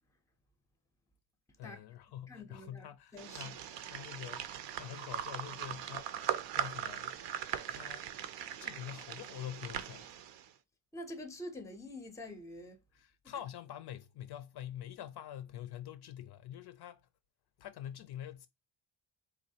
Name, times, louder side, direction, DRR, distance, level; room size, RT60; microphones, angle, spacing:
voice 1, 1.6-6.1 6.5-7.2 7.7-8.1 8.6-10.2 12.9-17.1 17.6-18.5, left 11 dB, 60° left, 0.5 m, -46 dB
voice 2, 2.3-2.9 3.1-3.5 10.9-12.8 13.2-13.3, left 1 dB, 5° left, 0.5 m, -46 dB
sound 1, 3.2-10.5, right 10 dB, 65° right, 0.6 m, -40 dB
4.0 x 3.1 x 2.8 m
cardioid pair, 145°, 47 cm